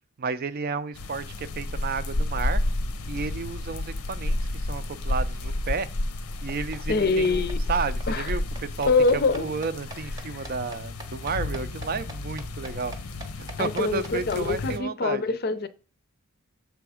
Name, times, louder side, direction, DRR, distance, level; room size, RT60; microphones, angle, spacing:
voice 1, 0.2-2.6 3.1-5.9 6.4-12.9 13.4-15.2, right 5 dB, 40° right, 0.4 m, -32 dB
sound 1, 1.0-14.8, left 1 dB, 85° left, 0.7 m, -31 dB
sound 2, 6.5-14.4, right 2 dB, 15° right, 0.8 m, -43 dB
voice 2, 6.9-7.6 8.1-8.3 8.8-9.5 13.6-15.7, left 3 dB, 45° left, 0.5 m, -24 dB
6.9 x 3.5 x 4.9 m
head